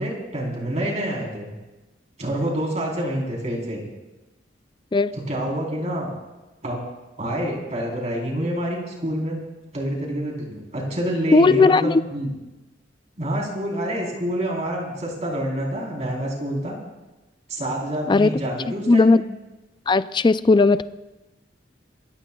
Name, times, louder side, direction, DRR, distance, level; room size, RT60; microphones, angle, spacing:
voice 1, 0.0-1.5 2.2-3.8 5.1-6.1 6.6-6.8 7.2-9.4 9.7-12.3 13.2-16.8 17.5-19.2, right 1 dB, 40° right, -1 dB, 3.8 m, -27 dB
voice 2, 11.3-12.0 18.1-18.3 18.9-19.2 19.9-20.8, left 3 dB, 25° left, 14 dB, 0.4 m, -16 dB
26.5 x 14.0 x 2.3 m, 1.1 s
head